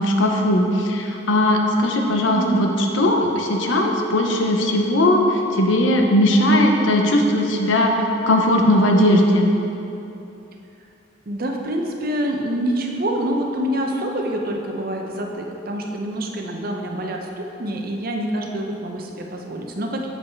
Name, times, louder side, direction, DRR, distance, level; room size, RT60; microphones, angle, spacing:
voice 1, 0.0-2.7 2.9-7.9 8.3-9.5, left 1 dB, 90° left, 2 dB, 0.8 m, -18 dB
voice 2, 2.3-2.7 11.3-20.1, right 1 dB, 50° right, 2 dB, 0.7 m, -26 dB
7.5 x 5.4 x 4.5 m, 2.9 s
head